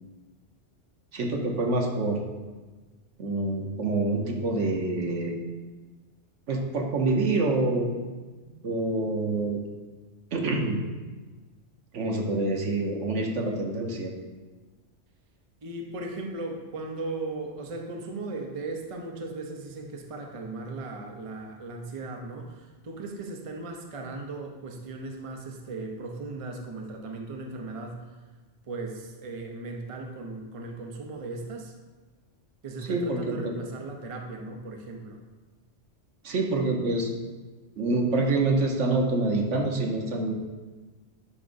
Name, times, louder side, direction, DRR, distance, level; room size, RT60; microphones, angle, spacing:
voice 1, 1.1-2.2 3.2-5.3 6.5-7.9 8.6-9.6 10.3-10.8 11.9-14.1 32.8-33.4 36.2-37.1 37.8-40.3, right 2 dB, 90° right, 1 dB, 1.2 m, -26 dB
voice 2, 15.6-28.0 28.7-31.7 32.6-35.2, right 3 dB, 35° right, 2 dB, 0.7 m, -37 dB
9.7 x 5.1 x 2.6 m, 1.3 s
omnidirectional pair, 1.2 m